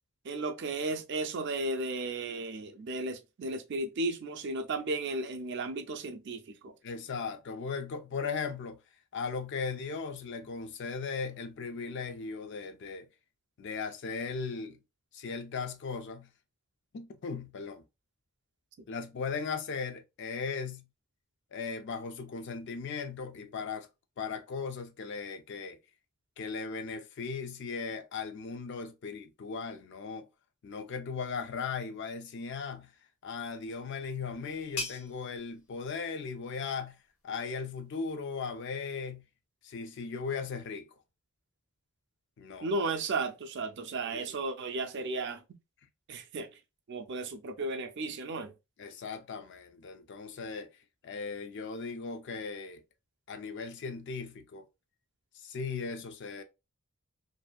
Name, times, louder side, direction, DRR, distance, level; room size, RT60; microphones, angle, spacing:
voice 1, 0.2-6.7 42.6-45.4 46.1-46.5 46.9-48.5, right 2 dB, 55° right, 0.4 m, -34 dB
voice 2, 6.8-8.8 9.1-13.1 13.6-14.8 15.1-16.3 16.9-17.8 18.9-20.8 21.5-23.9 24.2-25.8 26.4-30.3 30.6-32.9 33.2-37.0 37.2-39.2 39.6-40.8 42.4-42.7 44.1-44.2 48.8-50.7 51.0-52.8 53.3-54.6 55.4-56.4, left 5 dB, 55° left, 0.4 m, -37 dB
sound 1, 33.4-38.8, left 4 dB, 80° left, 0.8 m, -46 dB
2.6 x 2.3 x 2.2 m
head